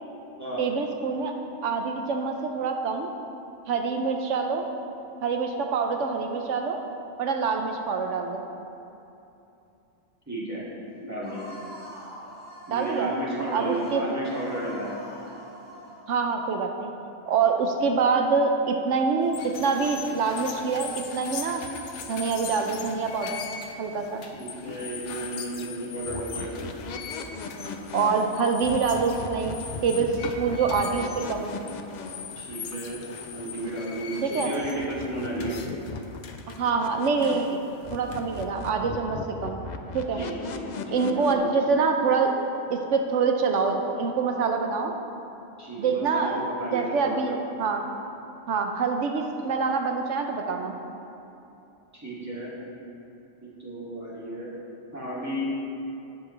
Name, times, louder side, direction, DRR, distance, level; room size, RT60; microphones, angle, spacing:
voice 1, 0.6-1.3 1.6-3.1 3.7-4.6 5.2-6.8 7.2-8.4 12.7-13.1 13.5-14.0 16.1-16.9 17.3-21.6 22.1-23.5 23.8-24.2 27.9-31.5 34.2-34.5 36.6-37.5 37.9-39.6 39.9-40.2 40.9-42.3 42.7-44.9 45.8-46.5 46.7-47.8 48.5-50.8, right 5 dB, 80° right, 4 dB, 1.0 m, -25 dB
voice 2, 10.3-10.6 11.0-11.5 12.7-15.0 24.3-26.5 32.4-33.0 33.3-35.6 40.1-41.6 45.6-47.4 51.9-52.5 53.4-54.5 54.9-55.5, right 1 dB, 15° right, -8 dB, 2.4 m, -33 dB
sound 1, 11.2-16.1, equal, 10° left, 2.3 m, -44 dB
sound 2, 19.2-38.5, left 6 dB, 75° left, 1.0 m, -40 dB
sound 3, 26.0-34.3 34.6-37.6 37.8-41.3, left 4 dB, 50° left, 0.6 m, -38 dB
17.5 x 7.1 x 3.3 m, 2.8 s
omnidirectional pair, 1.2 m